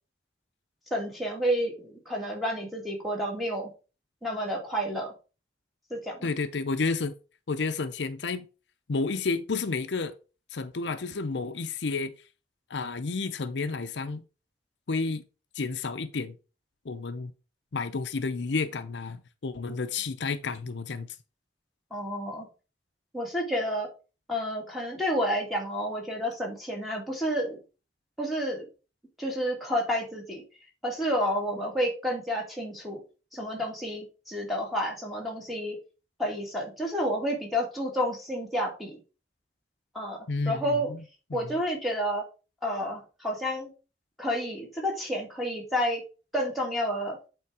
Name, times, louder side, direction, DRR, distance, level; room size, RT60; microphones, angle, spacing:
voice 1, 0.9-3.7 4.2-5.1 5.9-6.3 21.9-22.5 23.1-23.9 24.3-27.6 28.2-28.7 29.2-30.4 30.8-33.0 33.3-35.8 36.2-39.0 39.9-40.9 41.3-42.2 42.6-43.7 44.2-46.0 46.3-47.2, equal, ahead, 2.2 m, -30 dB
voice 2, 6.2-7.1 7.5-8.5 8.9-10.1 10.5-12.1 12.7-14.2 14.9-15.2 15.5-16.4 16.8-17.3 17.7-21.2 40.3-41.0 41.3-41.6, left 4 dB, 75° left, 0.6 m, -31 dB
8.4 x 3.8 x 4.8 m
head